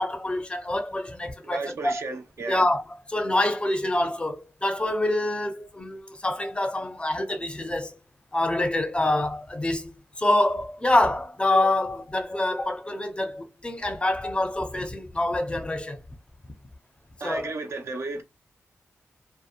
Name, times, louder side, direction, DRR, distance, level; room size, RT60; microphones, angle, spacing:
voice 1, 0.0-2.0 2.5-2.8 3.1-7.9 8.3-9.9 10.2-16.0 17.2-17.5, left 1 dB, 20° left, 0.5 m, -26 dB
voice 2, 1.4-2.7 17.2-18.2, right 3 dB, 65° right, 0.6 m, -33 dB
2.7 x 2.1 x 2.4 m
cardioid pair, 70°, 5 cm